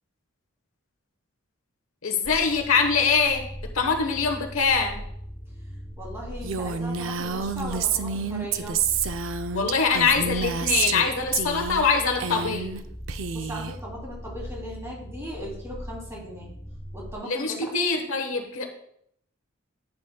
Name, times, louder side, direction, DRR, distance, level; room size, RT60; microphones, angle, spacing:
voice 1, 2.0-3.4 3.7-5.0 9.5-12.7 17.2-18.6, left 5 dB, 80° left, 4 dB, 1.1 m, -23 dB
sound 1, 2.2-17.1, equal, 10° left, 0.6 m, -40 dB
voice 2, 6.0-8.8 13.3-16.5 16.9-17.5, equal, 15° right, -3 dB, 2.8 m, -38 dB
Female speech woman speaking, 6.4-11.0 11.3-11.9 12.1-12.8 13.1-13.7, right 6 dB, 65° right, 0.5 m, -28 dB
11.0 x 8.7 x 2.2 m, 0.69 s
head